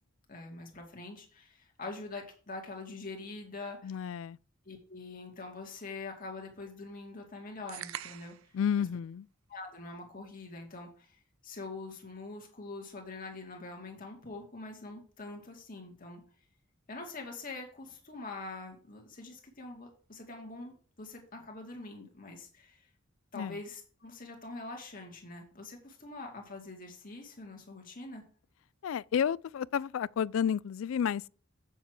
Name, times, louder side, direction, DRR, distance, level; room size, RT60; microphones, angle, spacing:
voice 1, 0.3-4.0 4.6-8.3 8.8-8.9 9.5-16.2 16.9-22.9 23.3-28.2, left 3 dB, 45° left, 2.5 m, -44 dB
voice 2, 3.8-4.4 8.5-9.3 23.3-23.6 28.8-31.3, left 8 dB, 75° left, 0.3 m, -31 dB
sound 1, 7.7-8.5, right 11 dB, 85° right, 0.5 m, -42 dB
8.1 x 7.2 x 4.7 m
head